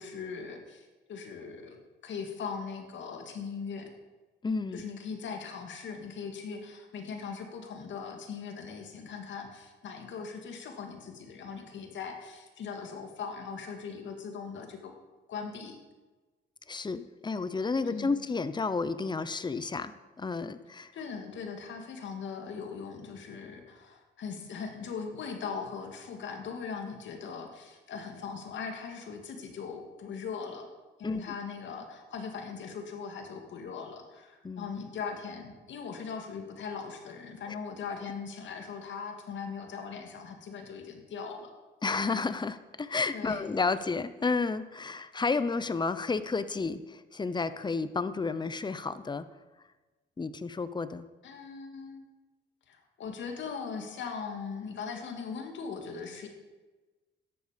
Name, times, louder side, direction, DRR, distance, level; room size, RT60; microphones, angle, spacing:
voice 1, 0.0-3.9 4.7-14.9 15.3-15.8 17.9-18.2 20.9-30.7 31.0-41.5 43.1-43.4 51.2-52.1 52.7-56.3, left 5 dB, 70° left, 4 dB, 2.3 m, -40 dB
voice 2, 4.4-4.8 16.7-20.9 31.0-31.4 34.4-34.7 37.5-37.6 41.8-49.3 50.2-51.1, left 4 dB, 20° left, 14 dB, 0.8 m, -31 dB
13.5 x 10.5 x 5.2 m, 1.2 s
cardioid pair, 90°, 20 cm